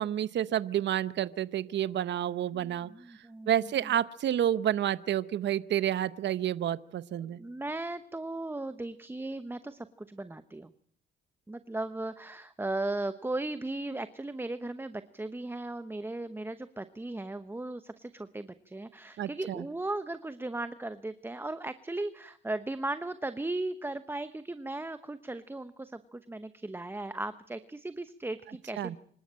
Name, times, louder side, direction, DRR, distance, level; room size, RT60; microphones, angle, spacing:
voice 1, 0.0-2.9 3.5-7.4 19.2-19.6 28.8-29.0, right 10 dB, 65° right, 16 dB, 0.9 m, -29 dB
voice 2, 2.5-3.7 7.3-10.7 11.5-29.0, right 2 dB, 10° right, 12 dB, 0.9 m, -37 dB
25.5 x 13.0 x 8.8 m, 0.65 s
cardioid pair, 90°, 20 cm